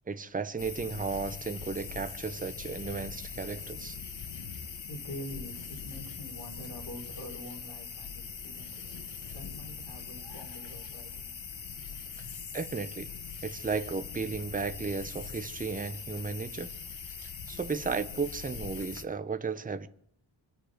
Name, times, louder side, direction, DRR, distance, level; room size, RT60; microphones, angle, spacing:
voice 1, 0.1-4.0 12.5-13.1 13.4-16.7 17.2-19.9, right 4 dB, 15° right, 0.7 m, -34 dB
sound 1, 0.6-19.0, left 6 dB, 70° left, 1.4 m, -42 dB
voice 2, 4.8-11.3, equal, 55° left, 4.1 m, -45 dB
25.0 x 9.5 x 5.0 m
wide cardioid pair, 120°, 48 cm